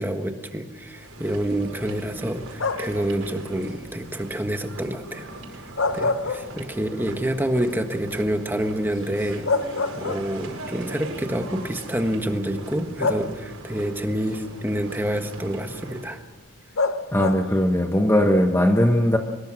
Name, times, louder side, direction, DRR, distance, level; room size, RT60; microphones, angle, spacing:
voice 1, 0.0-5.3 5.5-5.6 5.9-16.2, right 1 dB, 10° right, 6 dB, 1.5 m, -28 dB
sound 1, 0.9-16.2, right 2 dB, 85° right, 5.0 m, -40 dB
sound 2, 2.6-3.1 5.6-7.0 7.4-7.5 9.0-9.1 9.5-10.6 11.6-11.7 13.0-13.7 16.8-17.6, left 3 dB, 65° left, 0.9 m, -26 dB
voice 2, 17.1-19.2, equal, 10° left, 4 dB, 1.0 m, -19 dB
24.0 x 21.5 x 6.3 m, 1.2 s
head